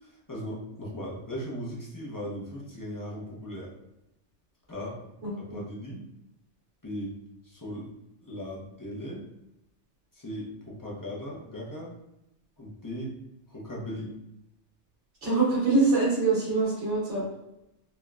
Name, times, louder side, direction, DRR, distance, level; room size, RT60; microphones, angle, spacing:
voice 1, 0.0-3.7 4.7-5.0 5.3-6.0 6.8-7.1 7.4-7.9 8.2-9.2 10.1-11.9 12.6-13.1 13.5-14.1, equal, 25° left, -5 dB, 0.5 m, -38 dB
voice 2, 5.2-5.6 15.2-17.2, right 3 dB, 80° right, -6 dB, 1.5 m, -24 dB
4.1 x 2.2 x 2.3 m, 0.87 s
omnidirectional pair, 1.2 m